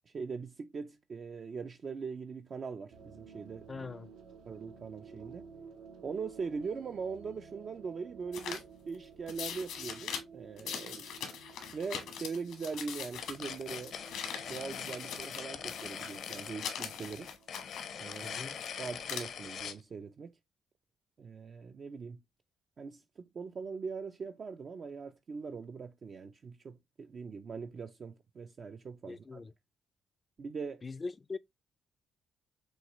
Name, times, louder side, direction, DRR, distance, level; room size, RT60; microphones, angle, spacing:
voice 1, 0.1-3.9 4.5-5.5 6.0-11.1 11.7-13.9 14.5-17.3 18.0-20.4 21.2-22.2 22.8-29.4 30.4-30.8, right 5 dB, 45° right, 0.3 m, -41 dB
sound 1, 2.9-19.3, right 6 dB, 90° right, 0.9 m, -54 dB
voice 2, 3.7-4.1 18.2-18.6 29.1-29.5 30.8-31.4, left 4 dB, 30° left, 0.3 m, -41 dB
sound 2, 8.3-8.6 9.3-10.2 10.6-15.4 15.7-18.7 19.0-19.2, left 8 dB, 90° left, 1.3 m, -42 dB
sound 3, 13.2-19.8, left 7 dB, 65° left, 0.7 m, -43 dB
6.2 x 2.4 x 2.9 m
cardioid pair, 90°, 0 cm